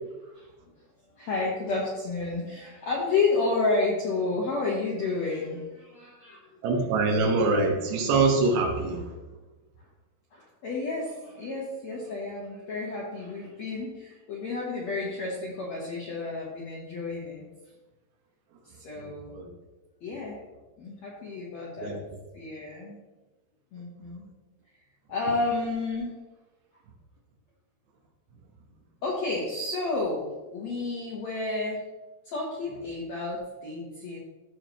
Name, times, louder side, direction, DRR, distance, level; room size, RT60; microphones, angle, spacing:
voice 1, 1.2-6.5 10.3-17.4 18.6-19.4 20.0-20.4 20.8-22.0 22.3-23.0 23.7-24.3 25.1-26.1 29.0-30.3 30.5-31.8 32.2-34.2, left 3 dB, 65° left, -4 dB, 1.7 m, -31 dB
voice 2, 6.6-9.1 19.3-19.5 21.8-22.0, right 3 dB, 75° right, 2 dB, 3.4 m, -24 dB
14.5 x 6.6 x 3.1 m, 1.2 s
omnidirectional pair, 5.0 m